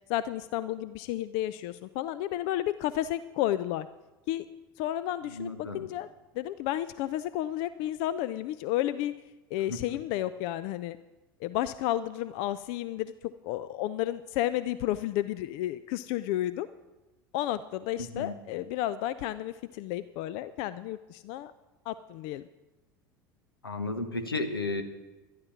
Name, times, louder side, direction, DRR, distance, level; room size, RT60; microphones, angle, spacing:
voice 1, 0.1-3.9 4.3-4.5 4.8-6.1 6.3-9.1 9.5-11.0 11.4-13.1 13.4-16.7 17.3-21.5 21.9-22.5, left 13 dB, 50° left, 15 dB, 0.4 m, -32 dB
voice 2, 5.3-5.9 9.7-9.8 18.0-18.3 23.6-24.8, left 2 dB, 85° left, 7 dB, 1.1 m, -33 dB
12.0 x 11.5 x 5.8 m, 1.1 s
figure-of-eight pair, 75°, 12 cm